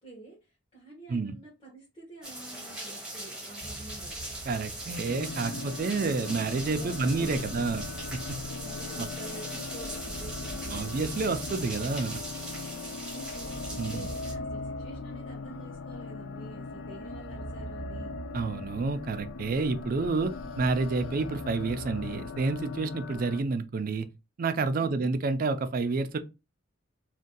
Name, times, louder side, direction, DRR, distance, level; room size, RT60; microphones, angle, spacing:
voice 1, 0.0-4.1 6.5-7.7 8.4-10.9 12.9-18.2 24.8-25.1, right 2 dB, 25° left, 1.0 m, -49 dB
sound 1, 2.2-14.3, right 1 dB, 5° right, 0.8 m, -40 dB
sound 2, 3.6-23.4, right 2 dB, 80° left, 1.4 m, -46 dB
voice 2, 4.5-7.9 8.1-8.4 9.0-9.1 10.7-12.2 13.8-14.1 18.3-24.1 24.4-26.2, right 3 dB, 45° right, 0.3 m, -29 dB
sound 3, 5.1-23.4, left 4 dB, 65° left, 0.4 m, -40 dB
2.6 x 2.2 x 3.7 m
head